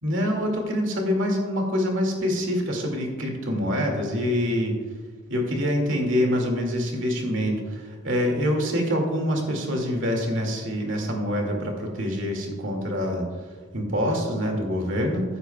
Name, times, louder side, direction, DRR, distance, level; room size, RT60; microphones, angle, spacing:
voice 1, 0.0-4.7 5.3-13.2 13.7-15.2, equal, 75° right, 1 dB, 2.1 m, -25 dB
13.5 x 11.0 x 2.2 m, 1.5 s
head